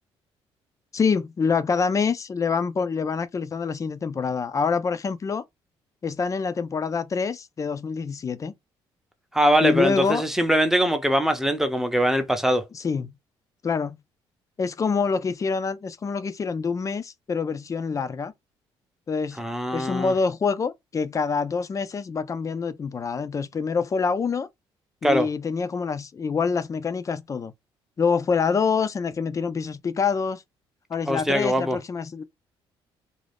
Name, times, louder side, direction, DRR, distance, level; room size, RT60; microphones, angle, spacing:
voice 1, 0.9-5.4 6.0-8.5 9.6-10.2 12.7-13.1 13.6-14.0 14.6-18.3 19.1-19.4 19.7-24.5 25.0-27.5 28.0-30.4 30.9-32.2, left 5 dB, 30° left, 0.4 m, -26 dB
voice 2, 9.3-12.6 19.4-20.1 25.0-25.3 31.1-31.8, equal, 5° right, 0.7 m, -22 dB
2.5 x 2.3 x 3.3 m
cardioid pair, 100°, 10 cm